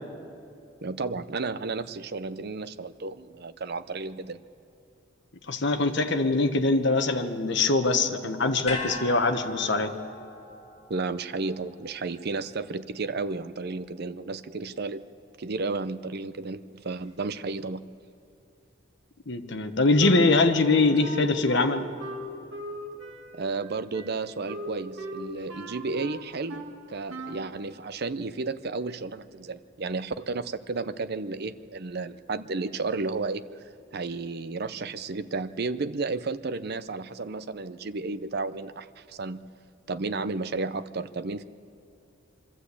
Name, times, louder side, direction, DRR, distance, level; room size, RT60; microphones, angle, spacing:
voice 1, 0.8-4.4 10.9-15.0 15.4-17.8 23.3-26.6 26.9-39.4 39.9-41.4, right 3 dB, 55° right, 12 dB, 0.6 m, -32 dB
voice 2, 5.5-9.9 19.3-21.9, left 3 dB, 60° left, 6 dB, 1.1 m, -23 dB
sound 1, 8.7-13.0 13.3-13.4, left 3 dB, 35° left, 2.9 m, -39 dB
Wind instrument woodwind instrument, 20.0-26.8 27.1-27.5, right 1 dB, 85° right, 1.9 m, -39 dB
24.0 x 13.5 x 8.3 m, 2.6 s
head